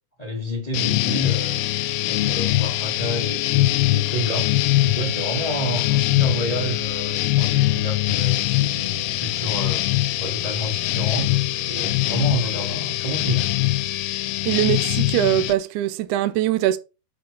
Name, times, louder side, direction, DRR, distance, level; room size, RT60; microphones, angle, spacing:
voice 1, 0.2-1.6 2.1-4.5 4.8-9.8 10.2-13.5, right 1 dB, 30° left, 0.7 m, -29 dB
sound 1, 0.7-15.5, left 17 dB, 85° left, 2.3 m, -22 dB
voice 2, 14.5-16.8, right 13 dB, 80° right, 1.8 m, -22 dB
7.6 x 4.1 x 4.8 m
omnidirectional pair, 4.0 m